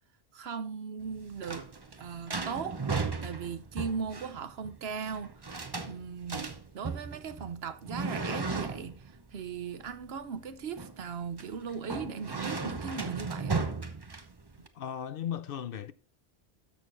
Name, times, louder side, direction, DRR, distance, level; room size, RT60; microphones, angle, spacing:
voice 1, 0.3-1.7 2.0-6.5 6.7-13.7, right 6 dB, 75° right, 1.1 m, -38 dB
sound 1, 1.0-14.7, right 4 dB, 25° right, 0.8 m, -36 dB
voice 2, 14.7-15.9, left 9 dB, 65° left, 0.8 m, -36 dB
13.0 x 6.4 x 2.6 m
omnidirectional pair, 1.1 m